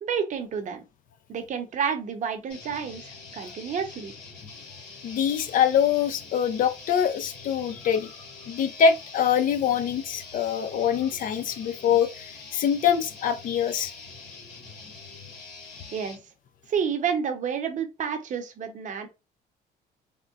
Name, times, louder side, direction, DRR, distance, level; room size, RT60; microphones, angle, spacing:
voice 1, 0.0-0.8 1.3-4.1 15.9-16.2 16.7-19.1, right 7 dB, 50° right, 0.7 m, -30 dB
sound 1, 2.5-16.2, left 4 dB, 85° left, 1.4 m, -44 dB
voice 2, 5.0-8.1 8.4-13.9, left 7 dB, 55° left, 0.4 m, -24 dB
3.7 x 2.1 x 2.4 m
cardioid pair, 110°, 17 cm